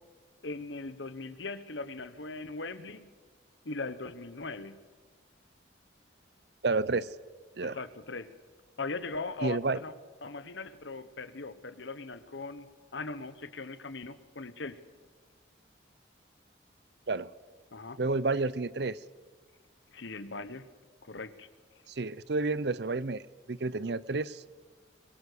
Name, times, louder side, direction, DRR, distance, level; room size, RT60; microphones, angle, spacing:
voice 1, 0.4-3.1 3.6-4.9 7.6-8.3 8.8-9.9 10.2-14.8 17.7-18.0 19.9-20.7 21.0-21.5, left 3 dB, 70° left, 12 dB, 1.2 m, -40 dB
voice 2, 6.6-7.2 7.6-7.8 9.4-9.8 17.1-17.3 18.0-19.0 21.9-24.4, right 3 dB, 60° right, 19 dB, 0.6 m, -30 dB
23.0 x 22.0 x 6.9 m, 1.4 s
head